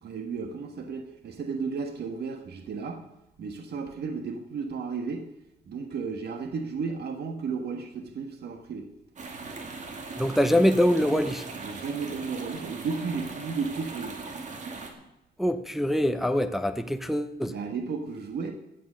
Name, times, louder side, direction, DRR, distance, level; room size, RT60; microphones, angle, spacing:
voice 1, 0.0-3.0 3.4-5.3 5.7-8.9 11.5-14.2 17.4-18.5, right 5 dB, 70° right, 1.5 m, -33 dB
sound 1, 9.2-14.9, right 3 dB, 45° right, 2.4 m, -39 dB
voice 2, 10.2-11.4 15.4-17.6, equal, ahead, 0.6 m, -24 dB
16.0 x 9.3 x 6.4 m
wide cardioid pair, 170°, 18 cm